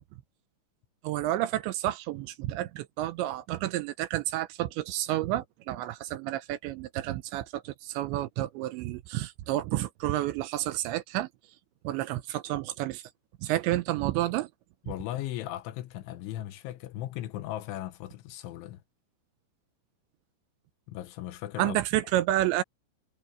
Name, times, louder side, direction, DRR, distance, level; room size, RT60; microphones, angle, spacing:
voice 1, 1.0-11.3 11.8-13.0 13.4-14.5 21.6-22.6, right 14 dB, 80° right, 2.7 m, -30 dB
voice 2, 14.8-18.8 20.9-21.8, left 14 dB, 80° left, 3.3 m, -37 dB
omnidirectional pair, 5.8 m